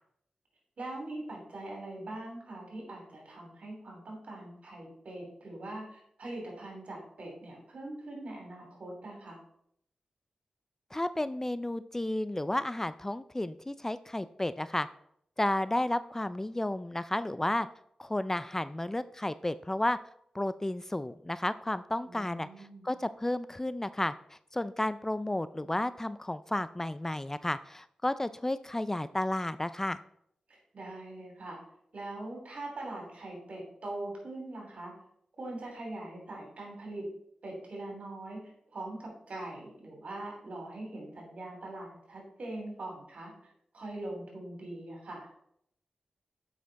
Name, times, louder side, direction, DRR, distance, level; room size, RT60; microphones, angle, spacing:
voice 1, 0.8-9.4 22.1-22.9 30.5-31.6 31.9-34.9 35.4-37.1 37.4-45.3, right 2 dB, 70° right, 0 dB, 3.1 m, -42 dB
voice 2, 10.9-14.9 15.4-17.7 18.0-20.0 20.3-30.0, left 1 dB, 20° left, 14 dB, 0.4 m, -32 dB
7.5 x 5.8 x 4.1 m, 0.70 s
cardioid pair, 50°, 2 cm